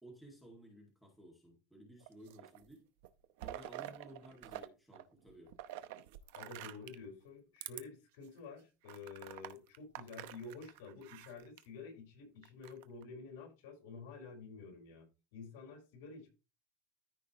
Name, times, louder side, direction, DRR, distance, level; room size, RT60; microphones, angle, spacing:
voice 1, 0.0-2.8 3.4-5.5, right 1 dB, ahead, 0 dB, 2.1 m, -56 dB
sound 1, 2.0-2.7 3.0-4.7 4.9-7.1 7.6-7.8 8.3-8.4 8.9-11.6 12.4-13.0, right 13 dB, 60° right, 0.7 m, -48 dB
voice 2, 6.3-16.3, left 4 dB, 65° left, 0 dB, 4.4 m, -50 dB
14.0 x 4.9 x 3.0 m, 0.30 s
supercardioid pair, 175°, 0 cm